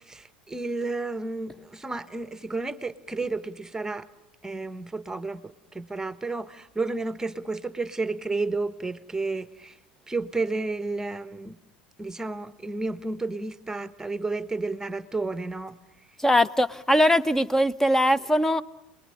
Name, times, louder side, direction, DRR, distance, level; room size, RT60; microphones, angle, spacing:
voice 1, 0.1-4.1 4.4-9.7 10.1-11.6 12.0-15.7, right 3 dB, 10° right, 13 dB, 1.3 m, -31 dB
voice 2, 16.2-18.6, equal, 10° left, 17 dB, 1.1 m, -21 dB
28.5 x 21.0 x 10.0 m, 0.95 s
hypercardioid pair, 90°, 5 cm